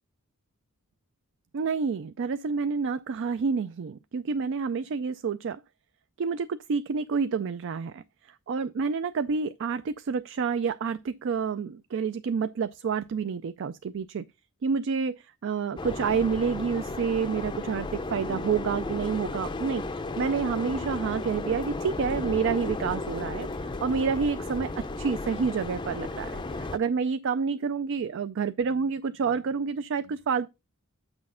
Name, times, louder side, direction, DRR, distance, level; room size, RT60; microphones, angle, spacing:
voice 1, 1.5-5.6 6.2-14.2 14.6-30.5, right 5 dB, 60° right, 0.4 m, -29 dB
sound 1, 15.8-26.8, left 2 dB, 20° left, 0.5 m, -34 dB
8.5 x 6.2 x 3.7 m
head